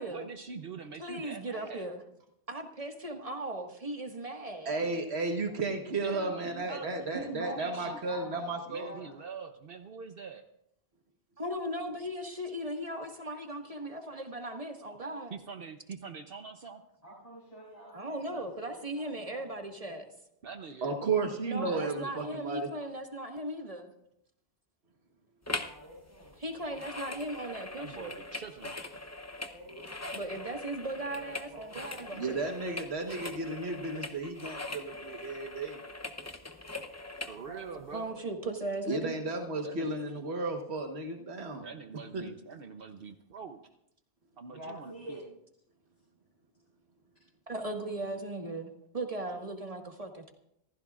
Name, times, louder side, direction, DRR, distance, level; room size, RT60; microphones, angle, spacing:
voice 1, 0.1-1.9 4.8-4.9 5.9-6.9 7.5-8.0 8.7-10.4 15.3-16.8 18.3-18.4 20.4-21.0 21.6-22.1 27.8-28.9 37.3-38.1 39.6-39.9 41.6-43.6 44.4-45.2, right 5 dB, 65° right, 6 dB, 1.0 m, -44 dB
voice 2, 1.0-2.0 2.5-4.7 11.4-15.3 17.9-20.1 21.4-23.9 26.4-28.2 30.1-32.8 37.9-39.2 47.5-50.3, right 1 dB, 35° right, 3 dB, 1.8 m, -38 dB
voice 3, 4.6-8.9 20.8-22.7 32.1-35.8 38.9-41.6 42.1-42.2, right 3 dB, 85° right, 4 dB, 1.6 m, -33 dB
voice 4, 7.1-9.1 17.0-19.9 25.5-26.3 29.5-32.3 37.4-38.2 44.5-45.2, right 1 dB, 40° left, -6 dB, 7.6 m, -47 dB
sound 1, 25.5-25.8 26.1-37.4 37.9-38.0, left 2 dB, 15° left, 0.7 m, -41 dB
27.0 x 15.0 x 2.5 m, 0.77 s
omnidirectional pair, 1.1 m